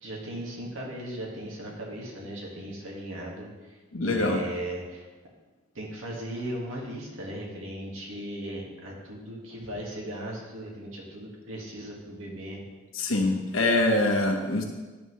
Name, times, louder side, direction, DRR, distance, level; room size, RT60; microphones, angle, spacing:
voice 1, 0.0-5.1 5.7-12.6, right 1 dB, 75° right, -2 dB, 1.8 m, -37 dB
voice 2, 3.9-4.4 12.9-14.6, left 2 dB, 75° left, 2 dB, 1.1 m, -24 dB
10.5 x 5.5 x 3.2 m, 1.3 s
head